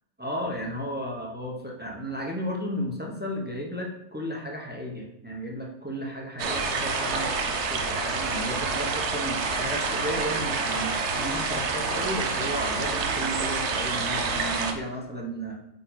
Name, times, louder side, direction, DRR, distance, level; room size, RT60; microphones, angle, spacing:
voice 1, 0.2-15.5, equal, 10° right, -1 dB, 0.5 m, -34 dB
sound 1, 6.4-14.7, right 4 dB, 60° right, 0.7 m, -28 dB
8.7 x 4.1 x 4.0 m, 0.84 s
omnidirectional pair, 2.0 m